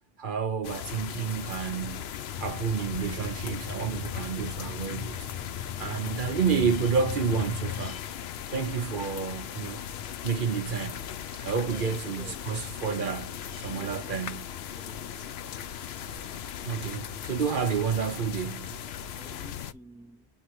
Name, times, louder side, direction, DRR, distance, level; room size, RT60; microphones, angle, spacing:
voice 1, 0.2-5.2 5.8-8.0 8.5-9.8 10.2-11.0 11.3-14.5 16.6-18.8, right 6 dB, 55° right, 0.9 m, -30 dB
sound 1, 0.6-19.7, left 9 dB, 80° left, 0.9 m, -38 dB
sound 2, 2.3-7.9, left 8 dB, 30° left, 1.3 m, -38 dB
voice 2, 11.6-11.9 12.2-12.5 13.7-14.1 14.7-15.4 19.1-20.3, right 2 dB, 5° right, 0.8 m, -49 dB
9.5 x 4.0 x 3.0 m
omnidirectional pair, 1.1 m